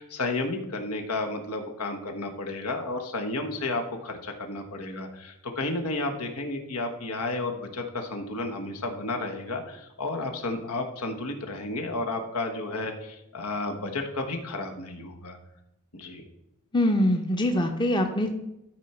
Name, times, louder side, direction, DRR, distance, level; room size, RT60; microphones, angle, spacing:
voice 1, 0.0-15.4 15.9-16.2, left 2 dB, 90° left, 4 dB, 1.4 m, -32 dB
voice 2, 16.7-18.3, left 1 dB, 20° left, 5 dB, 0.6 m, -23 dB
13.5 x 4.5 x 4.4 m, 0.88 s
head